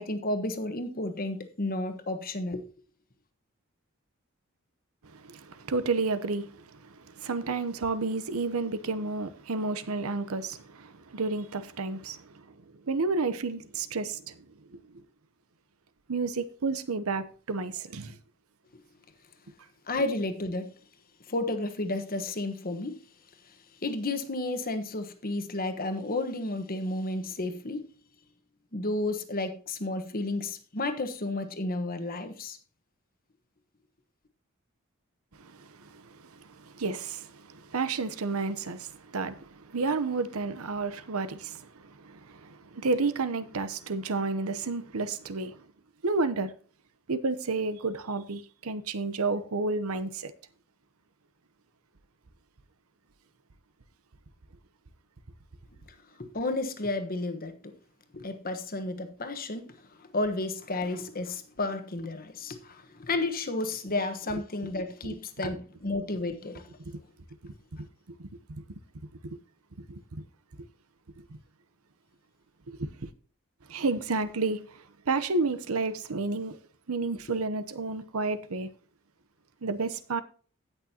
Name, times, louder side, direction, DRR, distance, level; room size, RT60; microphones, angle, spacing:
voice 1, 0.0-2.6 19.9-20.7 21.3-23.0 23.8-27.8 28.7-32.6 56.2-57.7 58.1-59.7 60.0-66.7, left 2 dB, 45° left, 1.3 m, -32 dB
voice 2, 5.1-6.5 6.9-12.4 12.9-14.4 14.7-14.8 16.1-18.2 35.4-45.6 46.0-46.5 47.1-50.3 66.9-67.0 67.4-67.9 68.2-68.6 69.2-69.4 69.9-70.2 71.2-71.3 72.7-73.1 73.7-76.6 76.9-78.7 79.6-80.2, right 3 dB, 80° right, 0.9 m, -31 dB
17.0 x 6.3 x 2.8 m
head